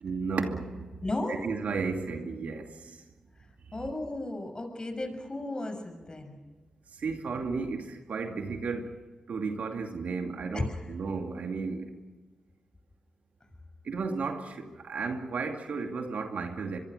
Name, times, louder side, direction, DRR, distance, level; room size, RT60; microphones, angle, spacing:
voice 1, 0.0-0.9 1.3-3.0 7.0-8.9 9.3-11.9 13.9-16.8, right 4 dB, 75° right, 2.5 m, -33 dB
voice 2, 1.0-1.4 3.7-6.4 10.5-10.9, left 2 dB, 35° left, 6.5 m, -34 dB
24.0 x 23.5 x 6.5 m
supercardioid pair, 40°, 3 cm